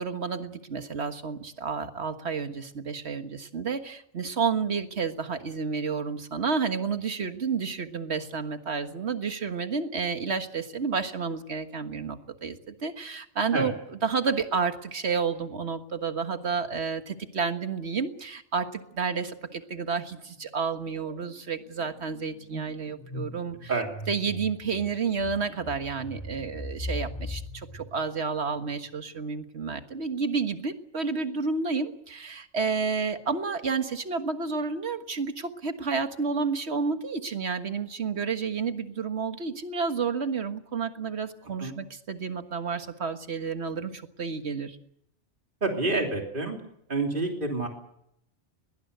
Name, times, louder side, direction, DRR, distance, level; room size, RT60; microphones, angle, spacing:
voice 1, 0.0-13.7 14.0-23.7 24.1-44.8, right 5 dB, 60° right, 8 dB, 1.8 m, -30 dB
sound 1, 19.4-19.7 20.0-28.8, equal, 25° left, 6.8 m, -41 dB
voice 2, 45.6-46.6 46.9-47.7, right 3 dB, 45° right, 2 dB, 3.4 m, -28 dB
21.5 x 19.0 x 8.1 m, 0.75 s
omnidirectional pair, 1.2 m